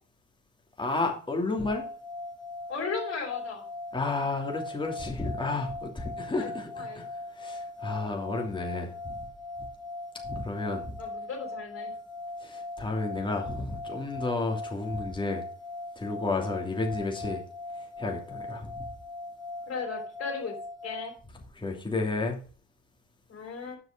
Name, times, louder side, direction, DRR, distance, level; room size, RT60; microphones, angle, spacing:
voice 1, 0.8-1.9 3.9-9.2 10.2-10.9 12.4-15.4 16.0-17.4 18.0-18.9 21.5-22.4, left 3 dB, 15° left, 2.9 m, -32 dB
sound 1, 1.6-21.2, left 2 dB, 10° right, 1.6 m, -40 dB
voice 2, 2.7-3.6 6.3-6.5 6.8-7.0 11.0-11.9 19.7-20.5 20.8-21.1 23.3-23.8, left 5 dB, 45° left, 4.0 m, -36 dB
8.0 x 6.1 x 6.1 m
cardioid pair, 90°, 30 cm